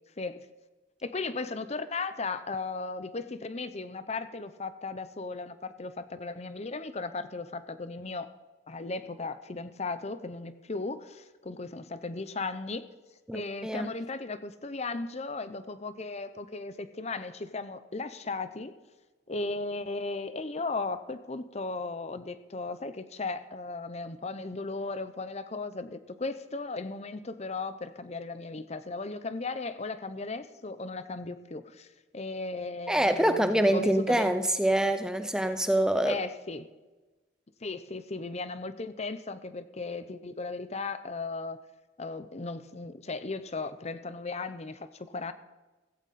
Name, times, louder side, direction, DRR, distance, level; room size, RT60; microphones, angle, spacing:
voice 1, 1.0-8.3 8.7-12.8 13.3-18.7 19.3-31.9 32.1-34.3 36.0-36.7 37.6-41.6 42.0-45.3, left 3 dB, 35° left, 11 dB, 0.8 m, -36 dB
voice 2, 13.3-13.9 32.9-36.2, right 1 dB, 5° right, 9 dB, 0.5 m, -25 dB
15.5 x 15.5 x 4.2 m, 1.2 s
head